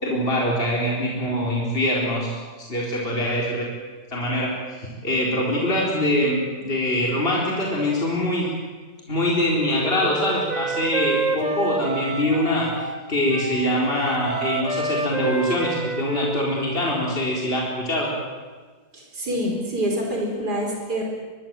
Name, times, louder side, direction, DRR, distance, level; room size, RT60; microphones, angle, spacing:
voice 1, 0.0-2.3 2.6-3.7 4.1-8.5 9.1-12.7 13.1-18.1, left 1 dB, 35° left, -3 dB, 4.6 m, -23 dB
Wind instrument woodwind instrument, 9.5-13.0 13.3-16.8, right 3 dB, 30° right, 1.3 m, -29 dB
voice 2, 18.9-21.0, equal, 80° right, 1 dB, 4.9 m, -26 dB
24.0 x 22.5 x 7.7 m, 1.4 s
omnidirectional pair, 1.7 m